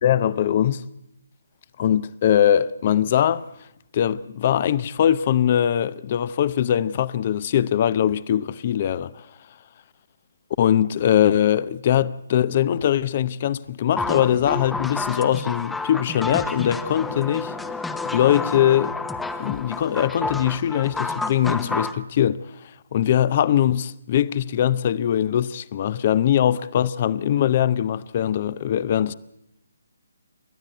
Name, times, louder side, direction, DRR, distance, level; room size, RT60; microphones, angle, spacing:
voice 1, 0.0-0.8 1.8-3.4 3.9-9.2 10.6-17.5 18.0-19.0 19.4-22.5 22.9-29.1, left 10 dB, 35° left, 0.8 m, -21 dB
sound 1, 14.0-22.0, left 3 dB, 5° left, 0.9 m, -30 dB
29.5 x 13.0 x 8.1 m
figure-of-eight pair, 145°, 0 cm